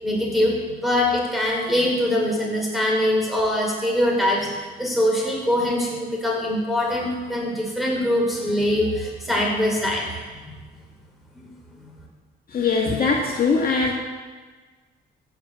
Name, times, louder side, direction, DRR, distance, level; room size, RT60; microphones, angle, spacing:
voice 1, 0.0-10.1 10.5-10.6 11.3-11.5, left 1 dB, ahead, -2 dB, 5.1 m, -23 dB
voice 2, 12.5-13.9, left 4 dB, 50° left, -1 dB, 2.2 m, -21 dB
15.5 x 7.3 x 7.4 m, 1.4 s
cardioid pair, 90°, 20 cm